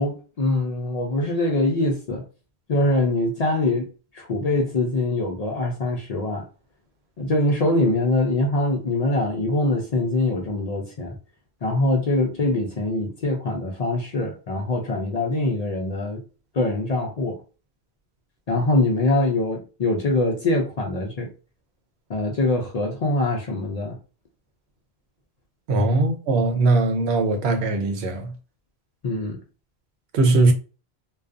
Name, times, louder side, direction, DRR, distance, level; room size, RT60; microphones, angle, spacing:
voice 1, 0.0-2.2 2.7-3.9 4.1-6.5 7.2-11.2 11.6-16.2 16.5-17.4 18.5-21.3 22.1-24.0 29.0-29.4, left 2 dB, 55° left, 0.4 m, -23 dB
voice 2, 25.7-28.3 30.1-30.5, right 2 dB, 90° right, 0.9 m, -20 dB
2.4 x 2.2 x 2.4 m
omnidirectional pair, 1.1 m